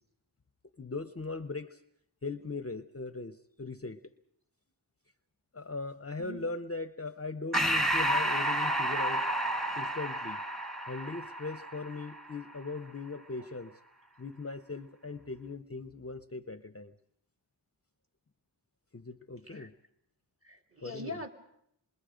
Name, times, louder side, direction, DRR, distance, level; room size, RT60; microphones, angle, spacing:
voice 1, 0.8-1.8 2.2-4.1 5.5-9.3 9.8-10.4 10.9-13.8 14.2-16.9 18.9-19.7 20.8-21.2, left 3 dB, 30° left, 11 dB, 0.8 m, -39 dB
Breathing, 7.5-12.4, right 1 dB, ahead, 1.6 m, -31 dB
voice 2, 20.4-21.3, left 2 dB, 30° right, 3 dB, 3.2 m, -42 dB
27.5 x 22.0 x 5.1 m, 0.72 s
wide cardioid pair, 40°, 44 cm